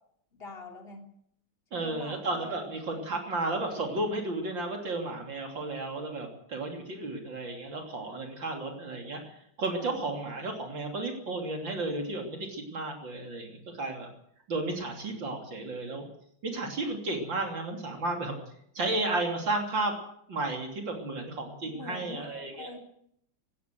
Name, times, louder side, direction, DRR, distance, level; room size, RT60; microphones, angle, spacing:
voice 1, 0.3-1.1 1.7-2.7 9.8-10.0 21.6-22.8, left 3 dB, 30° left, 3 dB, 3.6 m, -45 dB
voice 2, 1.7-14.1 14.5-16.1 16.4-18.3 18.7-20.0 20.3-22.7, right 2 dB, 65° right, 2 dB, 3.9 m, -33 dB
19.5 x 17.0 x 7.8 m, 0.69 s
omnidirectional pair, 2.2 m